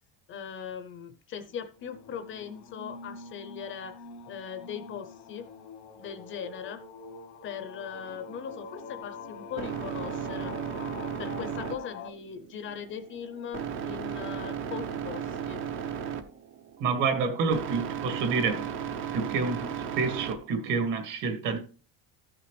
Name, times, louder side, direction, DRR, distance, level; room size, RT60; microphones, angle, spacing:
voice 1, 0.3-5.5 6.0-6.8 7.4-10.6 11.2-15.6, left 7 dB, 35° left, 0.7 m, -40 dB
sound 1, 1.8-12.1, left 4 dB, 85° left, 1.3 m, -45 dB
sound 2, 8.0-20.9, right 8 dB, 35° right, 0.7 m, -36 dB
voice 2, 16.8-18.7 19.1-21.6, right 5 dB, 55° right, 2.1 m, -28 dB
14.5 x 6.0 x 3.3 m
cardioid pair, 170°, 37 cm